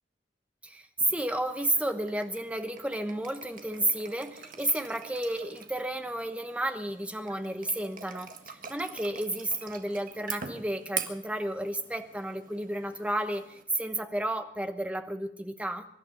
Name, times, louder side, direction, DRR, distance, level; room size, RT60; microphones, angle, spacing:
voice 1, 0.6-15.9, right 1 dB, 5° right, 8 dB, 1.0 m, -32 dB
sound 1, 1.0-13.6, right 7 dB, 50° right, 1.6 m, -44 dB
24.0 x 11.5 x 5.2 m, 0.74 s
head